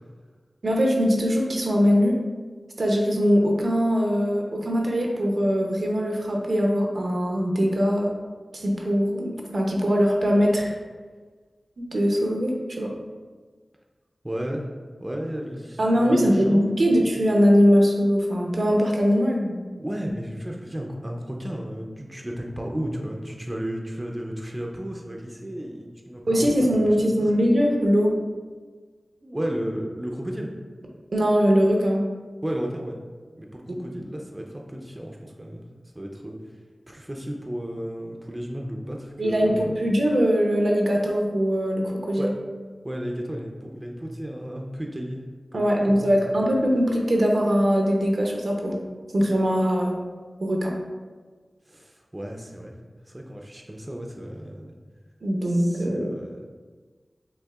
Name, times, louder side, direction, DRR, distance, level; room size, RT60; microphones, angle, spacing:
voice 1, 0.6-2.2 2.8-8.1 8.5-10.7 11.8-12.9 15.8-19.6 26.2-28.2 31.1-32.0 39.2-42.3 45.5-48.8 49.1-50.0 50.4-50.7 55.2-56.1, equal, 70° right, 0 dB, 0.6 m, -21 dB
voice 2, 14.2-14.7 15.0-17.0 19.8-26.8 27.3-27.5 29.2-30.5 32.4-33.0 33.4-35.6 35.9-36.4 36.9-39.8 42.2-42.3 42.8-45.2 45.5-46.1 51.7-52.8 53.1-54.7 55.5-56.5, equal, 20° right, 0 dB, 0.5 m, -33 dB
6.3 x 2.5 x 2.4 m, 1.4 s
wide cardioid pair, 60°, 0 cm